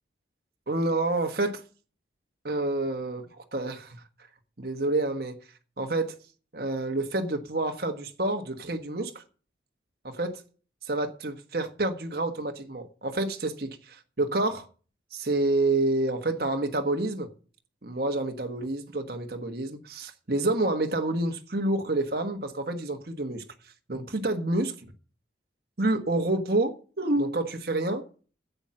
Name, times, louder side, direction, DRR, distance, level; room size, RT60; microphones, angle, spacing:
voice 1, 0.7-1.6 2.4-4.0 4.6-5.4 5.8-6.2 6.5-9.2 10.0-10.4 10.8-14.7 15.1-17.3 17.8-23.4 23.9-24.7 25.8-28.0, right 2 dB, 55° right, 1.3 m, -28 dB
10.0 x 8.0 x 7.5 m
head